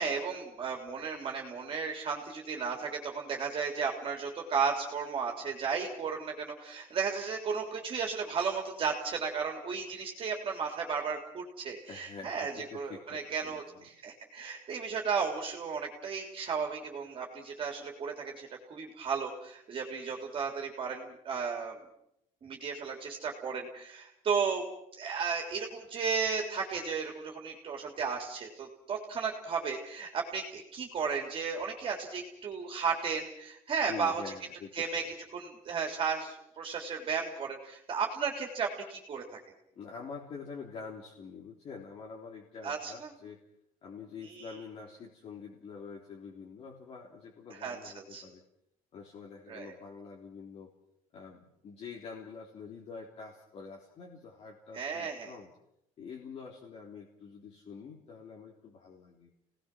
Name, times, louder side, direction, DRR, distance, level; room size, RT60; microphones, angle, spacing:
voice 1, 0.0-21.8 22.4-24.7 25.0-34.2 34.7-35.0 35.3-39.4 42.6-43.1 44.2-44.5 47.6-48.2 49.5-49.7 54.7-55.3, right 5 dB, 35° right, 1 dB, 3.6 m, -34 dB
voice 2, 11.9-13.9 33.9-35.0 39.8-43.4 43.8-48.4 48.9-50.7 51.1-55.5 56.0-59.3, left 5 dB, 45° left, -2 dB, 3.6 m, -46 dB
29.5 x 19.0 x 6.2 m, 0.77 s
cardioid pair, 155°, 15 cm